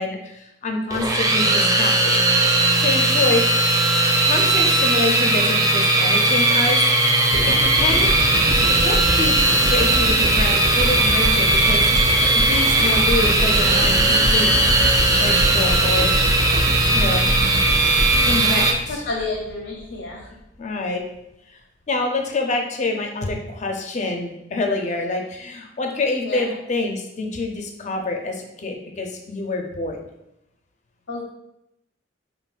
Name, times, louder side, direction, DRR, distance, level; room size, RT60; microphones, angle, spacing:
voice 1, 0.0-2.2 2.8-3.4 4.3-6.8 7.1-8.1 8.7-9.4 9.7-14.7 15.2-16.1 16.9-17.4 18.3-19.0 20.6-21.0 21.5-21.6 21.9-30.0, left 2 dB, 40° left, 3 dB, 0.5 m, -26 dB
sound 1, 0.9-18.7, right 2 dB, 20° right, 0.4 m, -18 dB
sound 2, 7.3-19.5 20.1-20.2, equal, 85° right, 0.8 m, -25 dB
voice 2, 18.3-18.7 19.1-20.2 26.2-26.4 31.1-31.2, left 3 dB, 90° left, -1 dB, 0.6 m, -30 dB
5.4 x 2.2 x 2.4 m, 0.84 s
head